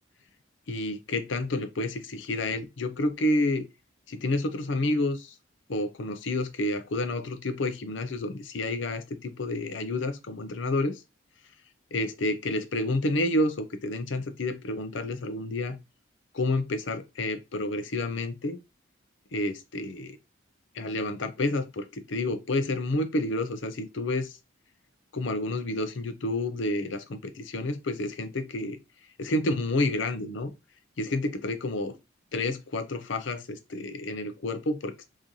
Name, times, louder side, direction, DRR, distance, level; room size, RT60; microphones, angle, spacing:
voice 1, 0.7-3.7 4.1-5.3 5.7-11.0 11.9-15.8 16.3-18.6 19.3-20.2 20.7-24.4 25.1-28.8 29.2-30.5 31.0-31.9 32.3-35.0, left 2 dB, 70° left, 0.6 m, -29 dB
3.1 x 2.7 x 3.7 m
head